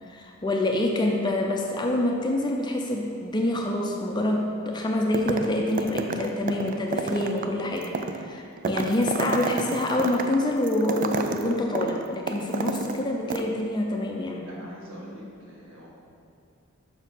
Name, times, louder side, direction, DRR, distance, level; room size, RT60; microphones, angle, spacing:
voice 1, 0.1-14.5, left 1 dB, 20° left, 1 dB, 0.5 m, -26 dB
sound 1, 5.1-5.5 5.8-13.0 13.3-13.4, right 4 dB, 40° right, 0.3 m, -30 dB
voice 2, 14.5-15.9, equal, 65° right, -5 dB, 1.6 m, -44 dB
6.1 x 4.5 x 5.3 m, 2.4 s
head